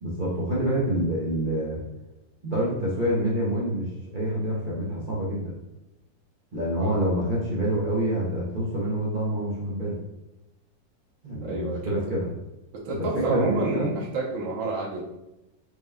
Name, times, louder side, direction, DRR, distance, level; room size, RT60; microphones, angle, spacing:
voice 1, 0.0-1.8 2.4-5.5 6.5-10.0 11.2-12.3 12.9-13.9, right 1 dB, 50° right, -7 dB, 0.5 m, -27 dB
voice 2, 6.8-7.1 11.4-12.0 12.7-15.0, right 3 dB, 90° right, -5 dB, 1.5 m, -29 dB
4.8 x 2.2 x 3.5 m, 0.94 s
omnidirectional pair, 2.0 m